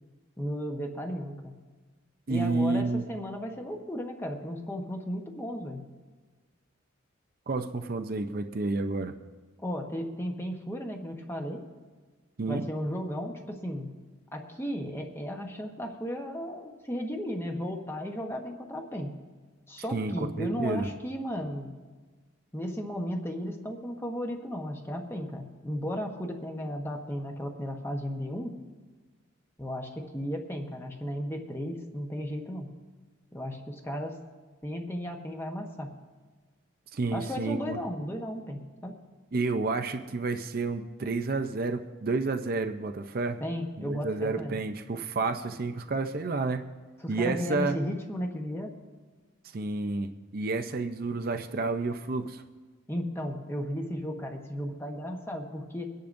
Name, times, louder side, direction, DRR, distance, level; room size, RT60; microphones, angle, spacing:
voice 1, 0.4-1.5 2.3-5.8 9.6-11.6 12.5-13.9 14.3-19.1 19.7-21.7 22.5-28.6 29.6-32.7 33.3-34.2 34.6-35.9 37.1-38.9 43.4-44.6 47.0-48.7 52.9-55.9, equal, 10° left, 2 dB, 1.0 m, -35 dB
voice 2, 2.3-3.0 7.5-9.2 12.4-12.6 19.9-20.9 36.9-37.8 39.3-43.4 43.8-46.7 47.1-47.8 49.5-52.4, right 3 dB, 45° right, 7 dB, 0.5 m, -30 dB
24.5 x 10.5 x 2.6 m, 1.4 s
head